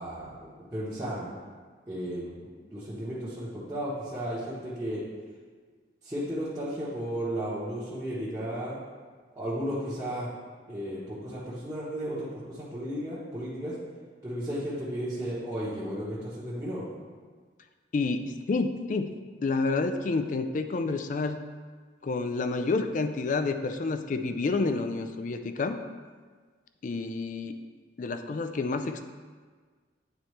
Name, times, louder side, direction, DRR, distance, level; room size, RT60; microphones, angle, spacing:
voice 1, 0.0-1.3 1.9-5.0 6.0-8.8 9.3-10.3 10.7-13.8 14.2-16.8, equal, 15° right, -11 dB, 1.1 m, -34 dB
voice 2, 17.9-19.1 19.4-21.4 22.0-25.8 26.8-27.6 28.0-29.0, left 3 dB, 40° left, 8 dB, 0.3 m, -29 dB
9.2 x 4.3 x 3.2 m, 1.5 s
head